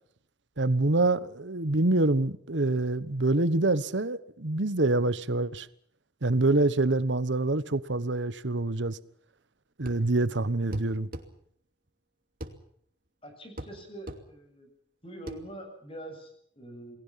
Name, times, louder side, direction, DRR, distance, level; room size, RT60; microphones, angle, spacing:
voice 1, 0.6-5.7 6.2-9.0 9.8-11.1, right 2 dB, 90° right, 1.2 m, -26 dB
sound 1, 9.8-10.1 10.7-11.3 12.4-12.6 13.6-13.8 14.1-14.2 15.3-15.4, right 1 dB, 50° right, 2.7 m, -39 dB
voice 2, 13.2-14.7 15.0-17.0, right 1 dB, 30° left, 7.4 m, -44 dB
29.5 x 20.0 x 5.9 m
head